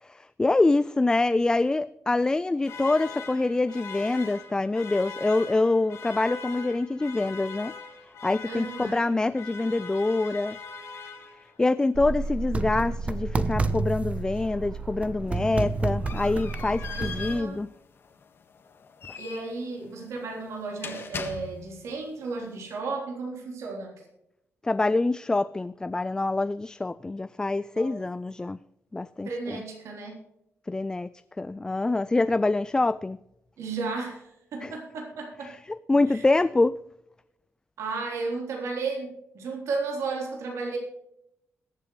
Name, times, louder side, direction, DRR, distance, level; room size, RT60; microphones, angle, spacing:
voice 1, 0.0-7.7 8.2-10.6 10.9-11.0 11.6-17.7 19.1-19.2 24.6-28.6 28.9-29.6 30.7-31.1 31.4-33.2 34.6-34.7 35.5-36.8, left 2 dB, 15° left, 14 dB, 0.3 m, -25 dB
sound 1, 2.6-11.7, left 5 dB, 75° left, 4.2 m, -41 dB
voice 2, 8.5-9.1 16.9-17.6 19.2-24.0 27.7-27.9 29.3-30.2 33.6-35.6 36.1-36.2 37.8-40.8, right 4 dB, 80° right, 0 dB, 3.6 m, -34 dB
sound 2, 11.9-17.4, right 3 dB, 25° right, 0.8 m, -30 dB
sound 3, 15.3-21.9, left 6 dB, 55° left, 1.6 m, -41 dB
21.5 x 8.3 x 3.2 m, 0.82 s
cardioid pair, 125°, 5 cm